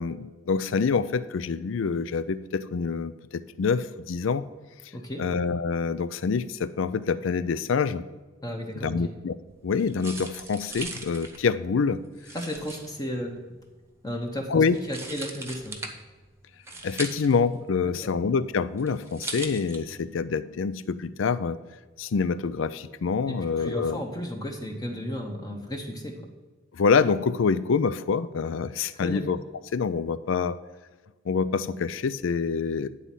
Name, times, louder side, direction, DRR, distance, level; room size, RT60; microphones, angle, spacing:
voice 1, 0.0-4.4 5.2-8.0 8.8-9.3 9.6-12.0 14.5-14.8 16.8-21.6 22.0-24.0 26.7-29.4 29.7-30.6 31.3-32.9, left 5 dB, 75° left, 15 dB, 0.4 m, -26 dB
voice 2, 4.9-5.2 8.4-9.1 12.3-13.5 14.0-15.8 18.0-18.1 23.3-26.3 28.9-29.2, equal, 20° left, 1 dB, 0.9 m, -34 dB
sound 1, 9.5-20.2, right 3 dB, 15° right, 0.9 m, -40 dB
9.8 x 4.1 x 7.4 m, 1.3 s
head